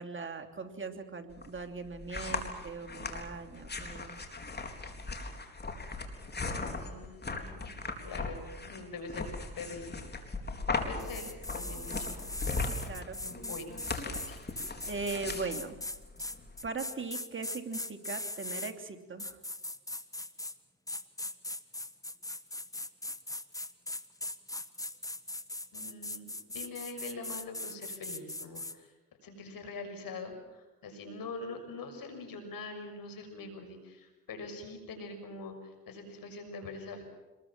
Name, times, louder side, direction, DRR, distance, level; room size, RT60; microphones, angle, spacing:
voice 1, 0.0-4.1 12.7-13.2 14.9-15.8 16.6-19.4, right 4 dB, 30° right, 5 dB, 3.0 m, -39 dB
sound 1, 1.3-16.6, left 3 dB, 25° left, 4.0 m, -38 dB
voice 2, 6.6-7.7 8.0-9.3 9.5-10.3 10.9-12.6 13.2-14.4 25.7-28.9 29.2-37.0, left 3 dB, 60° left, 5 dB, 6.4 m, -44 dB
sound 2, 11.0-18.7 19.2-20.6 20.9-28.8, left 2 dB, 10° left, 1.4 m, -40 dB
27.0 x 21.5 x 7.4 m, 1.2 s
supercardioid pair, 80°, 38 cm